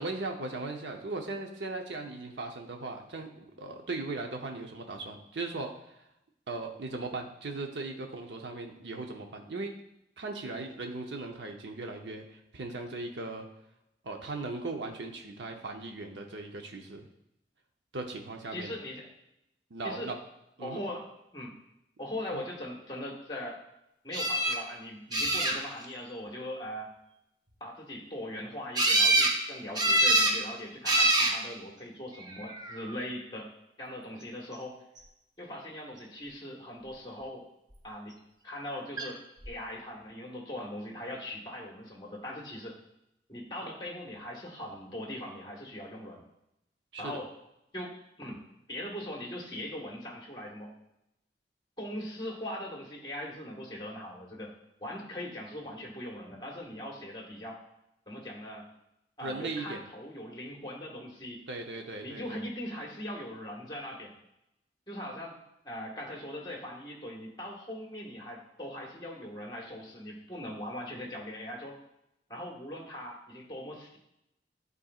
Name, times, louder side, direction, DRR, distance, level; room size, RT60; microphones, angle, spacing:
voice 1, 0.0-6.0 6.5-9.7 10.2-13.5 14.0-17.1 17.9-18.7 19.7-20.2 20.6-20.8 22.3-22.4 46.9-47.2 59.2-59.8 61.5-62.4, right 3 dB, 80° right, 3 dB, 0.8 m, -38 dB
voice 2, 18.5-19.1 19.8-20.1 20.6-21.6 22.0-23.6 24.0-26.9 27.6-33.5 33.8-34.8 35.4-37.5 37.8-38.2 38.4-42.8 43.3-46.2 47.0-47.3 47.7-48.4 48.7-50.7 51.8-54.5 54.8-57.6 58.1-58.6 59.2-61.4 62.0-64.1 64.9-65.4 65.6-71.8 72.3-74.0, left 1 dB, 25° left, -1 dB, 1.5 m, -40 dB
sound 1, 24.1-24.6 25.1-25.8 28.7-29.4 29.8-30.4 30.8-31.4 32.3-32.8 39.0-39.1 39.4-39.5, right 1 dB, 25° right, 0.8 m, -25 dB
11.5 x 4.1 x 2.4 m, 0.83 s
head